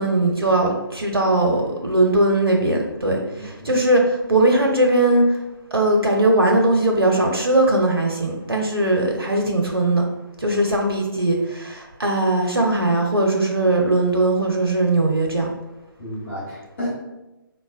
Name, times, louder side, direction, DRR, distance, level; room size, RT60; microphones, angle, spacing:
voice 1, 0.0-4.0 4.3-5.2 5.7-10.0 10.4-15.5, right 2 dB, 90° right, 1 dB, 0.5 m, -19 dB
voice 2, 3.0-3.8 10.5-10.6 16.0-16.9, equal, 35° left, -7 dB, 0.9 m, -32 dB
3.6 x 2.0 x 2.4 m, 0.98 s
figure-of-eight pair, 145°, 12 cm